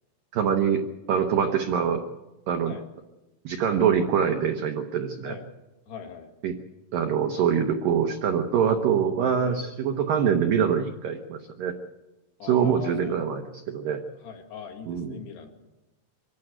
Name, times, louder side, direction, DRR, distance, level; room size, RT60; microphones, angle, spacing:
voice 1, 0.3-2.0 2.5-2.7 3.5-5.3 6.4-6.5 6.9-11.7 12.4-13.4 13.7-14.0 14.9-15.2, right 7 dB, 75° right, 5 dB, 2.0 m, -24 dB
voice 2, 5.9-6.3 9.4-9.6 12.4-13.3 14.2-15.5, left 6 dB, 65° left, 3 dB, 3.9 m, -40 dB
25.0 x 12.5 x 9.2 m, 1.1 s
omnidirectional pair, 5.4 m